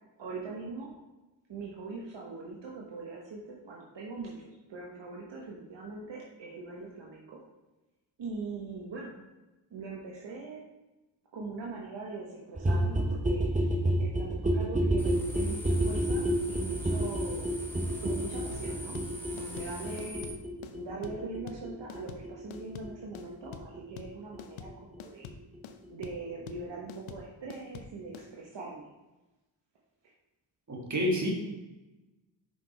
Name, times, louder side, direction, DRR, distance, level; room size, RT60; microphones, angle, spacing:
voice 1, 0.2-0.9 1.5-7.4 8.2-9.1 9.7-10.6 11.3-13.6 14.0-17.5 18.0-19.0 19.3-20.2 20.7-25.3 25.9-28.9, right 3 dB, 65° right, -3 dB, 1.2 m, -42 dB
sound 1, 12.6-24.1 24.3-24.4 24.6-24.7 24.9-25.0 25.2-25.3 25.5-25.6 25.8-25.9, right 1 dB, 15° right, 1.1 m, -30 dB
sound 2, 15.0-20.3, equal, 5° left, 1.7 m, -42 dB
sound 3, 18.5-28.3, left 7 dB, 90° left, 0.6 m, -46 dB
voice 2, 30.7-31.3, left 1 dB, 35° right, -1 dB, 2.0 m, -28 dB
5.3 x 5.0 x 4.2 m, 1.1 s
supercardioid pair, 40°, 47 cm